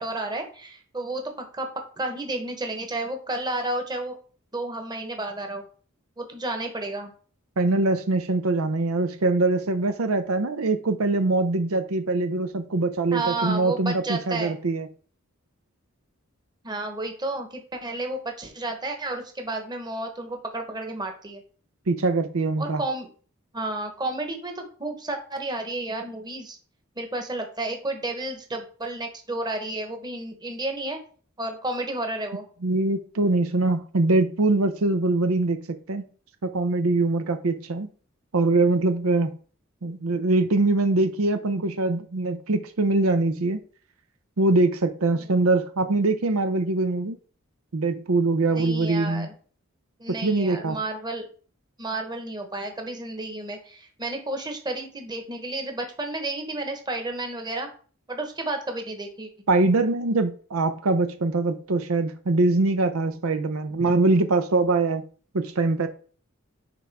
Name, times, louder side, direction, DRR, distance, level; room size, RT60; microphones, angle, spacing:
voice 1, 0.0-4.2 4.5-5.6 6.2-7.1 13.1-14.6 16.6-21.4 22.6-23.1 23.5-26.6 27.0-31.0 31.4-32.4 48.5-49.3 50.0-51.3 51.8-57.7 58.1-59.3 63.8-63.9, right 2 dB, 20° right, 1.2 m, -31 dB
voice 2, 7.6-14.9 21.9-22.8 32.6-36.1 36.4-37.9 38.3-39.4 39.8-43.6 44.4-47.2 47.7-49.3 50.1-50.8 59.5-65.0 65.3-65.9, right 2 dB, 90° right, 0.7 m, -23 dB
9.8 x 3.8 x 3.5 m
head